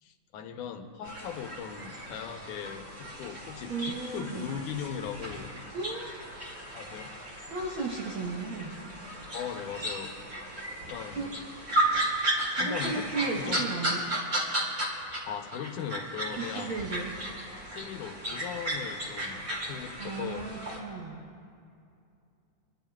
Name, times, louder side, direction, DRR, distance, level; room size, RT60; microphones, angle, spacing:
voice 1, 0.0-5.8 6.7-7.1 9.3-10.1 10.9-11.3 12.6-13.1 13.4-13.7 15.2-16.8 17.7-20.5, left 8 dB, 80° left, 5 dB, 2.2 m, -39 dB
sound 1, 1.0-15.2 15.5-20.8, right 1 dB, 30° right, 2.5 m, -34 dB
voice 2, 3.7-4.6 5.7-6.2 7.5-8.7 11.1-11.3 12.5-14.0 16.4-17.2 20.0-21.3, right 4 dB, 65° right, -3 dB, 1.3 m, -35 dB
28.0 x 11.5 x 2.3 m, 2.5 s
omnidirectional pair, 3.5 m